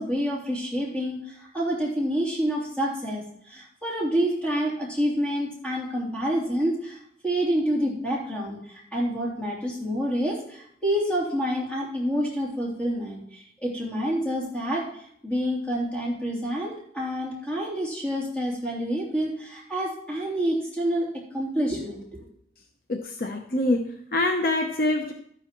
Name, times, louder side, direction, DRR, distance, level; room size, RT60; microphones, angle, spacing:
voice 1, 0.0-7.0 7.2-21.1 21.3-22.3, equal, 5° left, -5 dB, 3.0 m, -28 dB
voice 2, 22.9-25.1, left 2 dB, 55° left, 5 dB, 0.7 m, -25 dB
12.5 x 9.9 x 3.0 m, 0.67 s
head